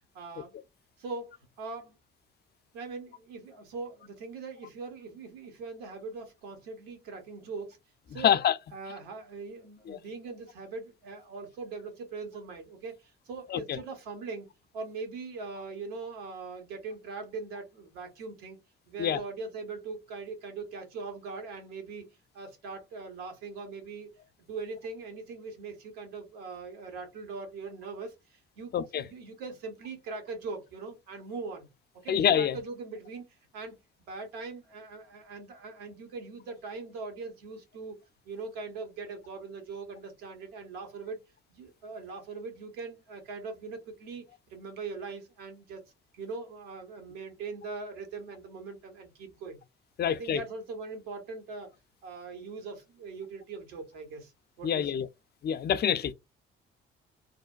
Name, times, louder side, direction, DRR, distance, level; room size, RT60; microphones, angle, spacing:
voice 1, 0.1-0.5 1.0-2.0 2.7-7.8 8.1-8.4 8.7-14.5 14.7-18.6 18.9-22.1 22.3-24.1 24.4-31.7 32.0-38.0 38.2-41.2 41.5-49.6 50.1-51.7 52.0-54.3 54.6-54.9, right 4 dB, 80° right, 0.9 m, -41 dB
voice 2, 8.1-8.6 9.9-10.0 13.5-13.8 19.0-19.2 28.7-29.0 32.1-32.6 50.0-50.4 54.6-55.1 55.4-56.1, left 9 dB, 35° left, 0.4 m, -26 dB
3.2 x 2.1 x 2.3 m
hypercardioid pair, 50°, 29 cm